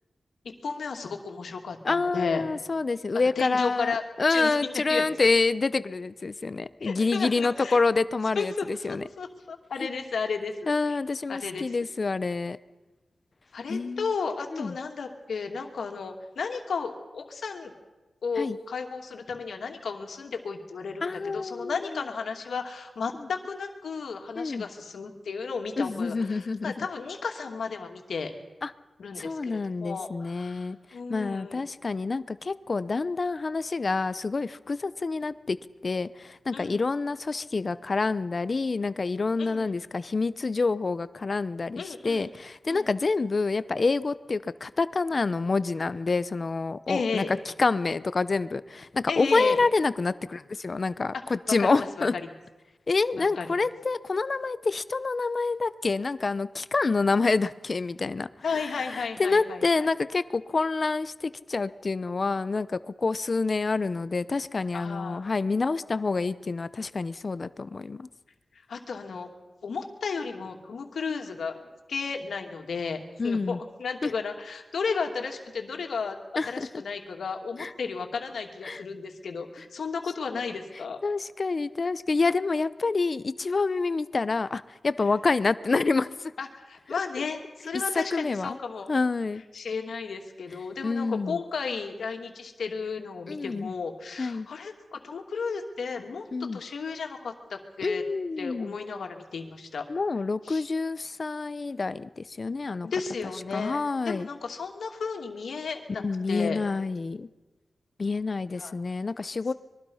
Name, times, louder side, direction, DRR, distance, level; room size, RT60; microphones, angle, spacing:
voice 1, 0.6-2.4 3.4-4.0 4.3-5.3 6.8-7.8 8.3-10.7 11.3-11.7 13.5-17.7 18.2-28.3 29.0-31.6 36.5-36.9 39.4-39.7 41.8-42.2 42.7-42.9 46.9-47.3 49.1-49.6 51.6-52.1 53.2-53.6 58.4-59.9 64.7-65.2 68.5-69.3 69.6-71.6 71.9-76.2 76.5-81.0 86.4-88.9 89.5-98.0 98.4-99.8 100.4-100.7 102.8-106.0 106.3-106.6 108.6-108.7, left 5 dB, 80° left, 4 dB, 2.7 m, -34 dB
voice 2, 1.8-9.0 10.7-12.6 13.7-14.1 14.5-14.7 18.4-18.6 21.0-22.0 23.2-23.3 24.3-24.6 25.8-26.9 28.6-28.7 29.2-30.8 31.1-35.6 35.8-52.1 52.9-58.3 58.5-68.1 73.2-73.6 74.0-74.1 76.4-76.7 77.6-77.7 78.6-78.8 81.0-86.3 87.7-88.6 88.9-89.4 90.8-91.4 93.3-93.7 94.2-94.5 96.3-96.6 97.8-98.7 99.9-102.9 103.5-104.3 106.0-107.3 108.0-109.5, left 3 dB, 40° left, 15 dB, 0.7 m, -27 dB
25.0 x 22.0 x 5.7 m, 1.1 s
wide cardioid pair, 150°, 0 cm